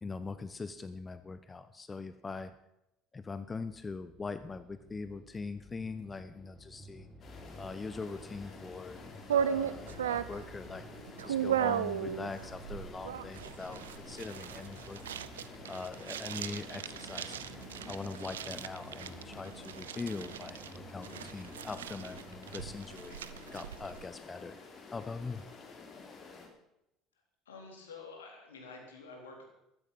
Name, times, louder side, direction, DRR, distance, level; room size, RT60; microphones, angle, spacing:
voice 1, 0.0-2.5 3.1-7.1 7.6-9.0 9.3-10.8 11.2-15.0 15.7-17.4 17.9-20.6 20.9-22.2 22.5-23.2 23.5-24.6 24.9-25.4, left 4 dB, 25° left, 12 dB, 1.0 m, -42 dB
sound 1, 3.4-22.9, equal, 10° left, 6.0 m, -53 dB
sound 2, 7.2-26.5, left 4 dB, 45° left, 4.2 m, -51 dB
sound 3, 9.3-24.0, right 9 dB, 85° right, 0.6 m, -37 dB
voice 2, 27.5-29.4, left 4 dB, 85° left, 2 dB, 3.5 m, -49 dB
14.5 x 13.5 x 5.5 m, 0.85 s
hypercardioid pair, 65°, 0 cm